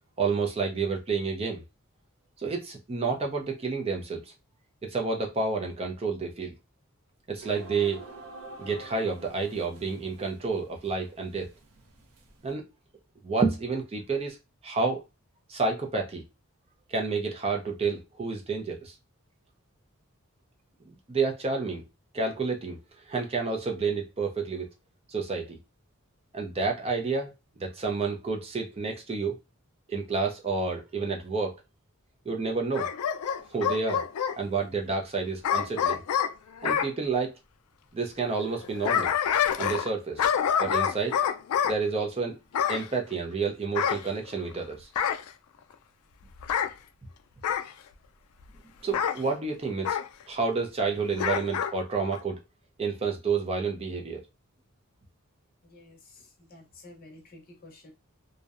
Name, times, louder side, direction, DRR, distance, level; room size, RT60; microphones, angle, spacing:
voice 1, 0.2-1.6 2.4-4.2 4.8-6.5 7.3-8.0 8.6-11.5 12.4-12.6 13.2-14.4 14.6-15.0 15.5-16.2 16.9-18.9 21.1-21.8 22.1-22.8 23.1-24.7 25.1-25.6 26.3-27.3 27.6-29.4 29.9-31.5 32.3-32.9 33.5-34.0 34.4-36.0 36.6-37.3 37.9-39.1 39.6-40.2 40.6-41.2 41.6-42.4 42.7-44.9 48.8-50.0 50.3-52.4 52.8-54.2, right 4 dB, 25° right, 2 dB, 0.4 m, -29 dB
sound 1, 7.4-12.5, right 3 dB, 75° right, 0.6 m, -47 dB
Bark / Growling, 32.7-34.4 35.4-36.9 38.5-39.9 40.2-41.8 42.5-42.9 43.8-44.6 45.0-45.3 46.4-46.7 47.4-47.7 48.9-49.2 49.8-50.1 51.2-51.7 52.1-52.2, left 8 dB, 80° left, 0.3 m, -27 dB
voice 2, 55.6-57.9, left 2 dB, 40° left, 2 dB, 0.7 m, -51 dB
2.6 x 2.0 x 2.4 m, 0.24 s
head